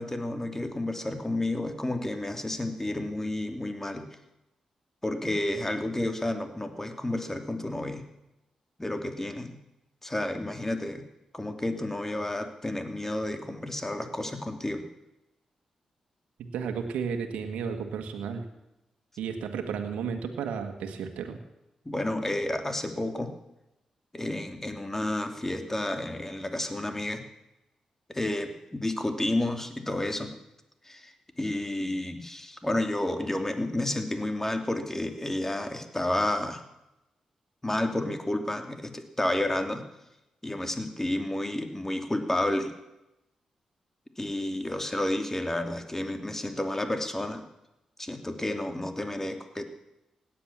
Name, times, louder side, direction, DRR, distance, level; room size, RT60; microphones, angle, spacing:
voice 1, 0.0-4.1 5.0-8.0 8.8-9.6 10.0-11.1 11.3-14.8 21.8-23.3 24.1-27.2 28.1-30.3 30.8-36.6 37.6-39.8 40.4-42.7 44.2-47.4 48.0-49.6, left 1 dB, 20° left, 6 dB, 2.9 m, -31 dB
voice 2, 16.4-18.4 19.2-21.4, right 6 dB, 85° right, 5 dB, 1.6 m, -33 dB
17.0 x 10.5 x 7.4 m, 0.92 s
supercardioid pair, 40°, 2 cm